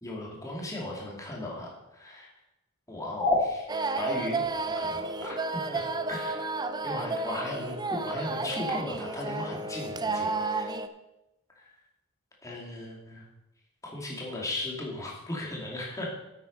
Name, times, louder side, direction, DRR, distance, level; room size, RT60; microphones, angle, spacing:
voice 1, 0.0-2.3 2.9-3.7 4.0-4.4 4.7-5.8 6.1-6.5 6.8-10.8 11.5-11.7 12.4-13.3 13.8-16.2, left 1 dB, 15° left, -2 dB, 2.6 m, -35 dB
sound 1, 3.7-10.9, right 3 dB, 20° right, 0.5 m, -32 dB
9.2 x 8.3 x 5.4 m, 0.93 s
head